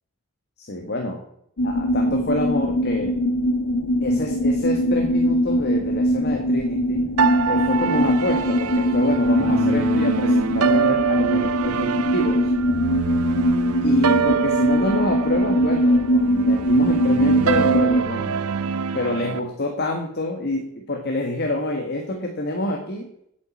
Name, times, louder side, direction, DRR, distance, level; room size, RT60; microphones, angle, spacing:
voice 1, 0.6-1.2 1.6-3.1 4.0-7.1 7.5-12.5 13.8-18.4 18.9-23.1, left 1 dB, 50° left, 2 dB, 1.7 m, -27 dB
sound 1, 1.6-18.0, equal, 90° left, 1.3 m, -21 dB
sound 2, 7.2-19.4, right 7 dB, 85° right, 0.7 m, -25 dB
9.5 x 7.5 x 8.5 m, 0.72 s
head